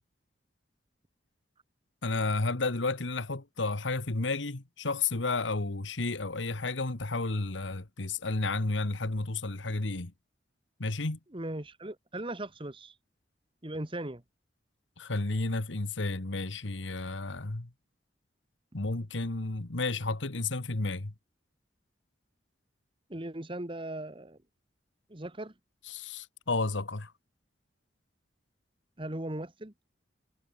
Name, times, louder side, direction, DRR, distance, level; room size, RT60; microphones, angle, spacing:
voice 1, 2.0-10.1 10.8-11.2 15.0-17.7 18.7-21.1 25.9-27.1, left 3 dB, 90° left, 1.5 m, -32 dB
voice 2, 11.3-12.9 13.6-14.2 23.1-24.4 25.1-25.5 29.0-29.7, right 1 dB, 30° right, 1.8 m, -38 dB
head